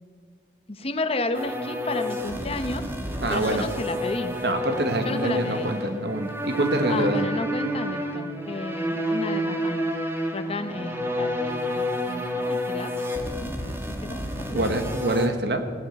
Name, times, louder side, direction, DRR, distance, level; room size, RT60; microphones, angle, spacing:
voice 1, 0.7-2.9 3.3-4.3 5.0-5.7 6.9-9.8 10.3-12.9 13.4-13.7 14.0-14.8, left 2 dB, 35° left, 9 dB, 0.9 m, -32 dB
sound 1, 1.3-15.3, equal, 15° right, 1.4 m, -29 dB
voice 2, 3.2-3.6 4.4-7.2 14.5-15.7, right 1 dB, 65° right, 7 dB, 1.3 m, -25 dB
17.0 x 9.0 x 8.0 m, 2.1 s
head